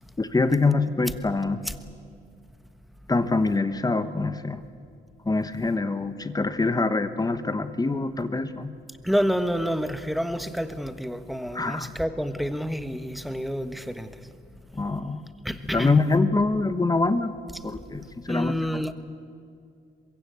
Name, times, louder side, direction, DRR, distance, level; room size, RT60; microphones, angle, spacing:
voice 1, 0.2-1.6 3.1-4.6 5.2-8.7 11.5-11.9 14.7-15.2 15.7-17.3 17.6-18.9, left 3 dB, 20° left, 11 dB, 1.2 m, -25 dB
voice 2, 9.0-14.1 15.4-15.9 18.3-18.9, equal, ahead, 10 dB, 1.4 m, -28 dB
23.5 x 21.5 x 8.3 m, 2.3 s
cardioid pair, 90°, 20 cm